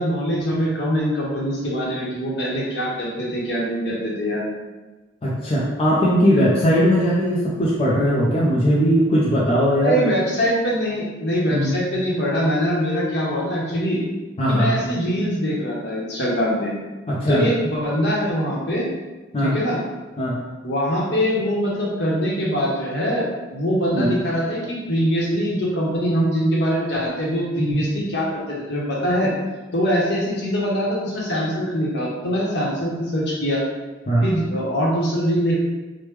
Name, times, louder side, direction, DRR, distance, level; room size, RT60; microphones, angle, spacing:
voice 1, 0.0-4.5 9.8-14.0 14.5-16.7 17.3-18.9 19.4-19.8 20.6-23.2 23.5-29.3 29.7-33.6 34.2-35.6, equal, 65° left, -4 dB, 0.9 m, -23 dB
voice 2, 5.2-10.0 11.5-11.7 14.4-14.7 17.1-17.4 19.3-19.5 20.2-20.4 23.9-24.2 34.1-34.3, equal, 35° left, -6 dB, 0.5 m, -19 dB
3.3 x 2.1 x 3.1 m, 1.2 s
head